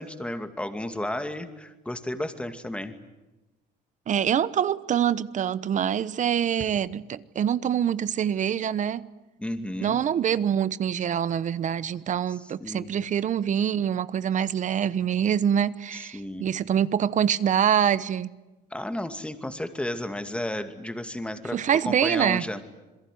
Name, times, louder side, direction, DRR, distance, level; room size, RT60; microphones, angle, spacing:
voice 1, 0.0-3.0 9.4-10.0 12.3-12.9 15.9-16.5 18.7-22.6, left 1 dB, 5° left, 2.5 m, -33 dB
voice 2, 4.1-9.0 9.8-18.3 21.5-22.4, right 9 dB, 45° right, 1.0 m, -25 dB
27.5 x 22.0 x 9.3 m
cardioid pair, 110°, 17 cm